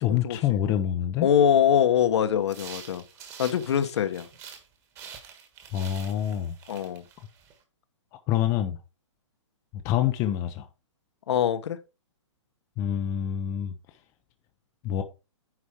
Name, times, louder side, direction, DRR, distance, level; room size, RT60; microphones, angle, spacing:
voice 1, 0.0-1.3 5.7-6.5 8.3-8.8 9.7-10.7 12.8-13.7 14.8-15.0, left 11 dB, 20° left, 0.7 m, -26 dB
voice 2, 1.2-3.0 3.4-4.3 6.7-7.0 11.3-11.8, left 9 dB, 60° left, 1.3 m, -23 dB
sound 1, 2.4-4.7 4.9-7.5, right 7 dB, 20° right, 1.7 m, -46 dB
9.7 x 5.0 x 4.8 m
hypercardioid pair, 165°, 16 cm